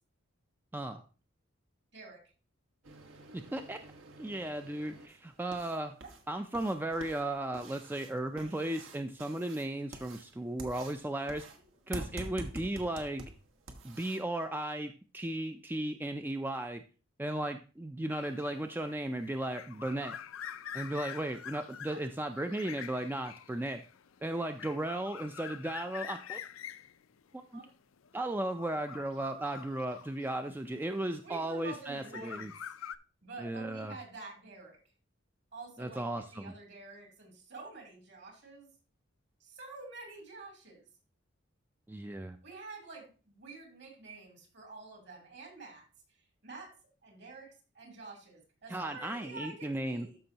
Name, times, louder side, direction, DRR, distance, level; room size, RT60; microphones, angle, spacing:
sound 1, 2.8-14.2, right 2 dB, 75° right, 1.4 m, -48 dB
voice 1, 3.3-3.8 4.2-6.0 6.3-11.5 11.9-13.3 13.8-16.8 17.2-20.2 20.7-23.8 24.2-26.4 27.5-27.6 28.1-32.5 33.4-33.9 35.8-36.5 41.9-42.4 48.7-50.1, right 1 dB, 10° right, 7 dB, 0.3 m, -35 dB
sound 2, 18.1-31.0 31.7-33.0, left 9 dB, 90° left, 0.5 m, -46 dB
voice 2, 28.6-29.1 31.2-32.7 33.2-34.8 35.5-36.0 36.3-38.7 39.4-40.9 42.4-45.8 46.4-46.7 47.0-50.2, right 3 dB, 60° right, 1 dB, 3.1 m, -48 dB
13.0 x 5.3 x 2.9 m, 0.35 s
head